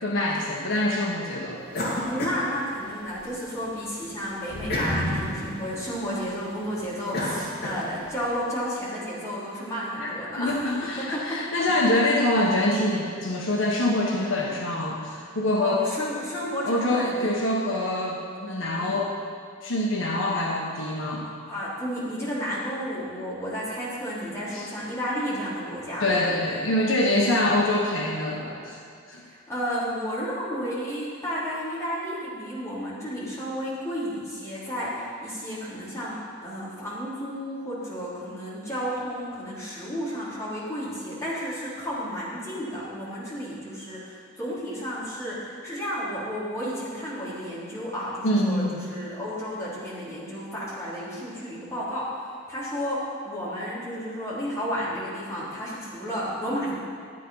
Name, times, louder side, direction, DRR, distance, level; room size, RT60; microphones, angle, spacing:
voice 1, 0.0-1.9 10.0-15.9 16.6-19.1 19.6-21.3 24.5-24.7 26.0-28.8 29.1-29.2 48.2-48.8, left 1 dB, 70° left, -2 dB, 1.4 m, -25 dB
sound 1, 1.7-3.3 3.7-8.2, left 1 dB, 50° left, 2.2 m, -31 dB
voice 2, 2.0-10.6 11.0-11.7 15.5-17.3 18.7-19.0 21.2-26.6 27.2-27.6 29.3-52.1 52.5-56.8, equal, 15° left, -9 dB, 3.6 m, -32 dB
12.5 x 9.1 x 5.7 m, 2.3 s
head